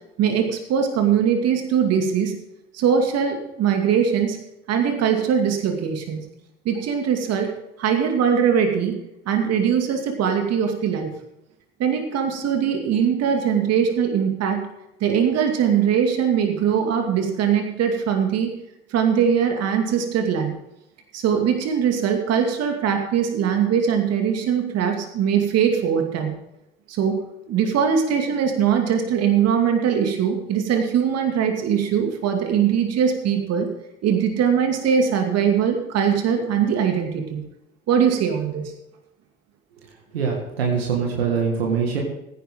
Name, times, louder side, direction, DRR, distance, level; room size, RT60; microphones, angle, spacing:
voice 1, 0.2-2.3 2.7-4.4 4.7-6.2 6.6-7.5 7.8-9.0 9.3-11.1 11.8-14.6 15.0-18.5 18.9-20.5 21.1-26.3 26.9-33.7 34.0-37.4 37.9-38.7, right 7 dB, 60° right, 4 dB, 2.4 m, -21 dB
voice 2, 40.1-42.0, right 6 dB, 90° right, 0 dB, 2.0 m, -23 dB
15.5 x 10.0 x 3.8 m, 0.85 s
hypercardioid pair, 60°, 29 cm